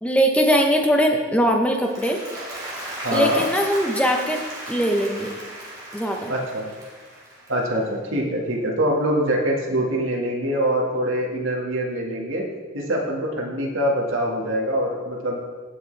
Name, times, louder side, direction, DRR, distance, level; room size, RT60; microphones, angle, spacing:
voice 1, 0.0-2.2 3.1-4.4 4.7-5.3 5.9-6.3, equal, 5° left, 2 dB, 0.8 m, -21 dB
Applause, 1.7-8.0, right 1 dB, 15° right, 2.6 m, -36 dB
voice 2, 3.0-3.4 6.3-6.7 7.5-12.5 12.7-15.4, equal, 70° right, -1 dB, 1.8 m, -24 dB
16.0 x 6.0 x 3.4 m, 1.5 s
head